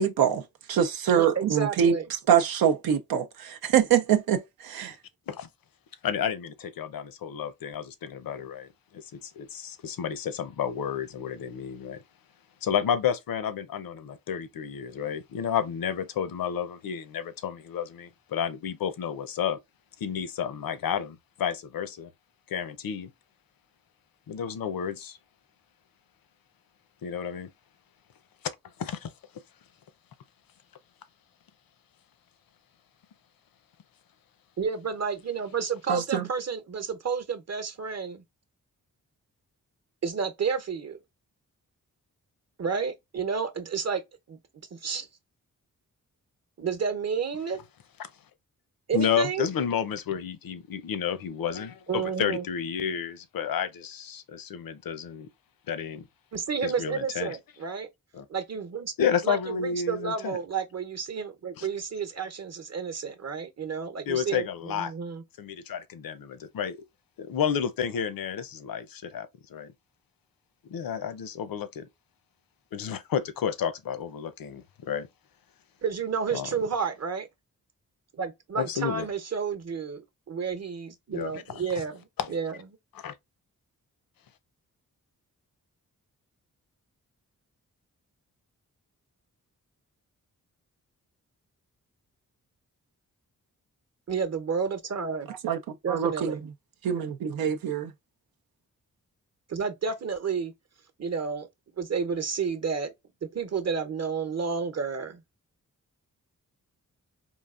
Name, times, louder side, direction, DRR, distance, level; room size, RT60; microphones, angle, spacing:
voice 1, 0.0-1.9 2.3-5.0 35.9-36.3 95.3-95.6 95.9-96.4 96.8-97.9, right 8 dB, 90° right, 0.5 m, -24 dB
voice 2, 1.1-2.1 34.6-38.2 40.0-41.0 42.6-44.0 44.3-44.4 44.7-45.1 46.6-47.6 48.9-49.5 51.9-52.5 56.3-57.9 58.3-65.2 75.8-77.3 78.1-82.6 94.1-95.3 95.8-96.4 99.5-100.5 101.0-101.5 101.8-102.9 103.2-105.2, right 6 dB, 45° right, 0.9 m, -31 dB
voice 3, 6.0-12.0 12.6-19.6 20.0-22.1 22.5-23.1 24.3-25.2 27.0-27.5 28.8-29.1 48.9-55.3 55.7-56.1 56.6-57.4 58.1-58.2 59.0-60.4 61.6-61.7 64.1-64.9 65.4-66.8 67.2-69.7 70.6-71.9 72.7-75.1 76.3-76.5 78.6-79.1 81.1-81.6 82.2-82.3 82.9-83.1, left 8 dB, 75° left, 0.6 m, -31 dB
3.8 x 2.4 x 2.4 m
cardioid pair, 50°, 35 cm